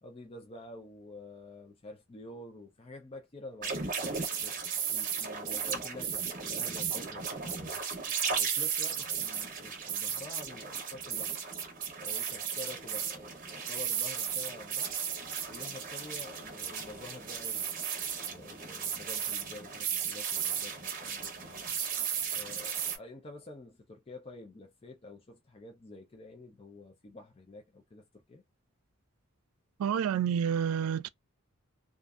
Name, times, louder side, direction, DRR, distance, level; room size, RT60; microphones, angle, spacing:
voice 1, 0.0-4.6 4.9-7.8 8.4-11.3 12.0-14.9 15.5-17.7 18.3-21.7 22.3-28.4, left 2 dB, 25° left, 0.4 m, -48 dB
sound 1, 3.6-23.0, right 7 dB, 40° right, 0.7 m, -35 dB
voice 2, 29.8-31.1, right 8 dB, 90° right, 0.3 m, -29 dB
2.5 x 2.4 x 2.3 m
head